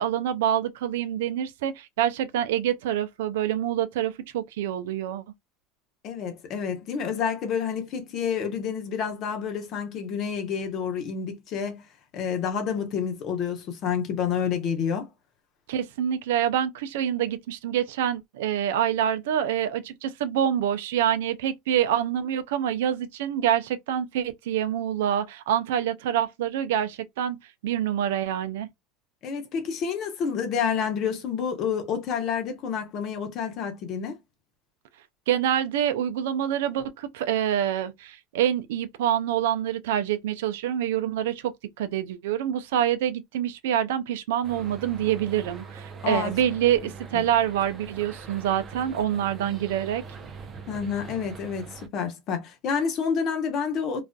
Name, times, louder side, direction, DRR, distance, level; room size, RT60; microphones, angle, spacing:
voice 1, 0.0-5.2 15.7-27.4 27.6-28.7 35.3-50.0, right 10 dB, 80° right, 0.4 m, -26 dB
voice 2, 6.0-11.8 12.1-15.1 29.2-34.2 46.0-46.3 47.1-47.2 49.4-49.6 50.7-54.0, left 7 dB, 50° left, 0.9 m, -29 dB
sound 1, 44.4-51.9, right 5 dB, 35° right, 0.6 m, -42 dB
2.4 x 2.4 x 2.2 m
hypercardioid pair, 90°, 0 cm